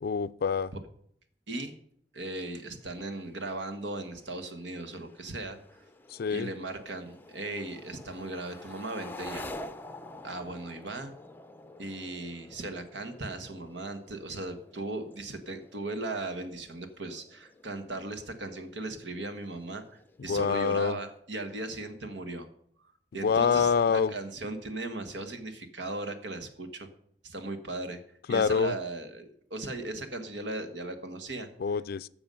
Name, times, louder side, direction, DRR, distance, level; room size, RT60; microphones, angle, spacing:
voice 1, 0.0-0.7 6.1-6.5 20.3-21.0 23.2-24.1 28.3-28.7 31.6-32.1, left 6 dB, 55° left, 16 dB, 0.4 m, -26 dB
voice 2, 1.5-1.8 2.1-5.8 6.3-9.5 10.2-11.1 11.8-19.8 20.2-22.5 23.1-26.9 27.2-28.0 28.3-31.5, right 2 dB, 75° right, 8 dB, 1.4 m, -37 dB
sound 1, 2.4-21.2, left 2 dB, 10° left, 0.6 m, -49 dB
13.0 x 7.0 x 5.4 m, 0.67 s
head